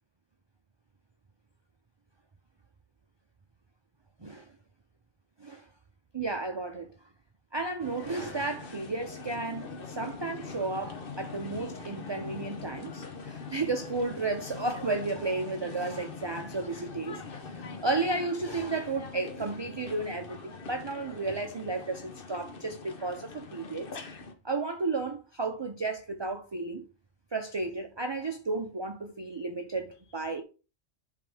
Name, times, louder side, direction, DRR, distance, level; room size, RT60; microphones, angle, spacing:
voice 1, 6.1-6.9 7.5-23.9 24.4-26.8 27.3-30.4, right 3 dB, 30° right, 0.6 m, -33 dB
sound 1, 7.8-24.3, left 4 dB, 55° left, 1.1 m, -43 dB
11.0 x 3.8 x 3.4 m
omnidirectional pair, 1.1 m